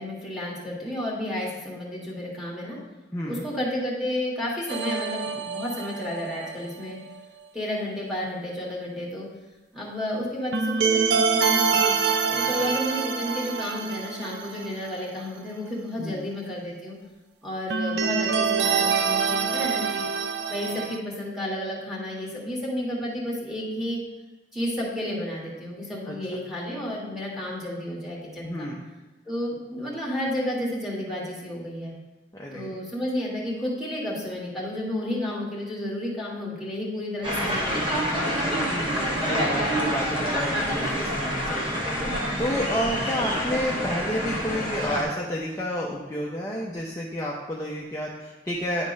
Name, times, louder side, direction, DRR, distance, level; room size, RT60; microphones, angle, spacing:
voice 1, 0.0-2.8 3.2-7.0 7.5-9.3 9.7-11.9 12.3-17.0 17.4-20.0 20.5-24.0 24.5-28.7 29.2-31.9 32.5-38.5, left 1 dB, 5° right, -5 dB, 1.7 m, -31 dB
voice 2, 3.1-3.5 12.3-12.4 16.0-16.3 26.1-26.2 28.4-28.8 32.3-32.8 38.7-48.9, equal, 15° left, -4 dB, 0.6 m, -31 dB
sound 1, 4.7-6.5 10.5-14.9 15.2-15.3 17.7-21.0, right 5 dB, 65° right, 0.5 m, -25 dB
sound 2, 37.2-45.0, equal, 30° right, 1.1 m, -27 dB
9.7 x 3.5 x 5.2 m, 1.1 s
head